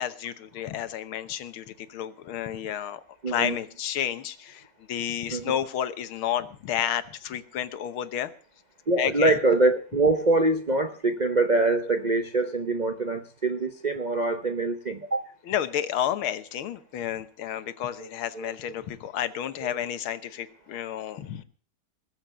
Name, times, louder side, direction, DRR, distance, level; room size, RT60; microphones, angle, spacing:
voice 1, 0.0-3.0 3.3-8.3 9.0-9.4 15.5-21.4, left 10 dB, 85° left, 13 dB, 1.9 m, -31 dB
voice 2, 3.2-3.6 5.3-5.6 8.9-15.2 18.0-18.1 18.3-18.5 19.6-19.7, right 2 dB, 55° right, 8 dB, 0.4 m, -24 dB
20.0 x 7.7 x 6.8 m, 0.42 s
omnidirectional pair, 2.2 m